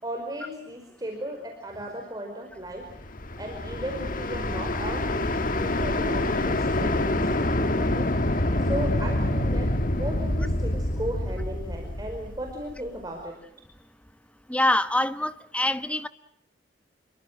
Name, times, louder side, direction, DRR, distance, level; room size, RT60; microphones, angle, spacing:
voice 1, 0.0-2.8 3.4-13.3, right 1 dB, 20° right, 1 dB, 5.1 m, -36 dB
sound 1, 2.9-12.9, left 1 dB, 50° left, 1.5 m, -26 dB
voice 2, 14.5-16.1, left 1 dB, 10° left, 11 dB, 1.1 m, -25 dB
28.0 x 23.5 x 7.8 m, 0.74 s
head